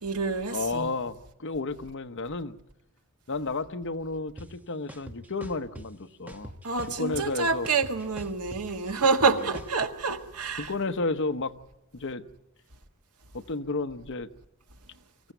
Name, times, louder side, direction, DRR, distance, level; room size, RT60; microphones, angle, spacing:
voice 1, 0.0-0.9 6.6-10.7, right 4 dB, 85° right, 1.6 m, -27 dB
voice 2, 0.5-2.6 3.3-6.5 7.0-7.7 10.6-11.6 11.9-12.2 13.3-14.3, left 3 dB, 55° left, 0.9 m, -32 dB
sound 1, 4.4-4.5 4.9-5.9 6.3-7.3 7.6-9.7, equal, 5° right, 1.3 m, -42 dB
25.0 x 15.0 x 9.1 m
head